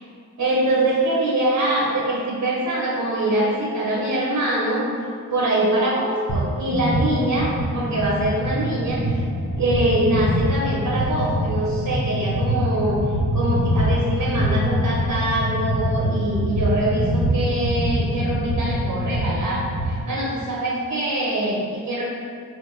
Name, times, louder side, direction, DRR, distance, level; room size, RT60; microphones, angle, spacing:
voice 1, 0.4-4.9 5.3-9.2 9.6-22.0, right 1 dB, 75° right, -5 dB, 0.7 m, -23 dB
sound 1, 6.3-6.4 6.7-20.0, equal, 30° left, 0.9 m, -24 dB
5.1 x 2.1 x 2.9 m, 2.3 s
wide cardioid pair, 100°, 33 cm